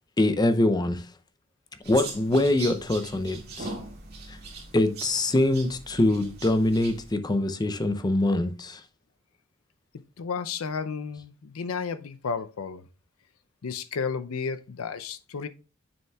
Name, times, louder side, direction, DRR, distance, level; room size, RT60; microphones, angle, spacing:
voice 1, 0.2-1.1 1.9-3.7 4.3-4.4 4.7-8.8, left 1 dB, 20° left, 0.5 m, -24 dB
sound 1, 1.8-7.1, right 3 dB, 50° right, 2.1 m, -40 dB
voice 2, 9.9-12.8 13.6-15.5, left 5 dB, 85° left, 0.5 m, -32 dB
7.0 x 6.4 x 2.3 m
head